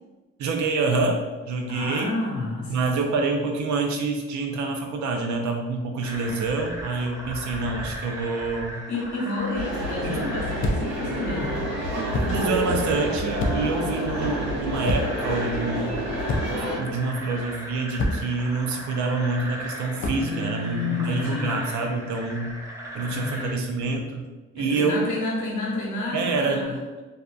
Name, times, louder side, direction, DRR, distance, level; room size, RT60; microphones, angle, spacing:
voice 1, 0.4-2.1 2.7-8.8 10.0-10.2 12.2-16.0 16.8-22.6 22.9-24.3 24.5-25.1 26.1-26.6, right 3 dB, 70° right, 3 dB, 0.5 m, -27 dB
voice 2, 1.7-2.8 8.9-11.7 20.1-21.6 23.1-23.7 24.6-26.8, left 3 dB, 70° left, -4 dB, 0.9 m, -30 dB
sound 1, 6.0-23.5, equal, 10° right, 0.7 m, -38 dB
sound 2, 9.5-16.8, equal, 40° right, 1.0 m, -29 dB
sound 3, 10.6-11.0 12.1-12.4 13.4-13.8 14.9-15.3 16.3-16.7 18.0-18.4 20.0-20.3, left 1 dB, 45° left, 0.4 m, -27 dB
2.5 x 2.2 x 2.4 m, 1.2 s
cardioid pair, 90°, 30 cm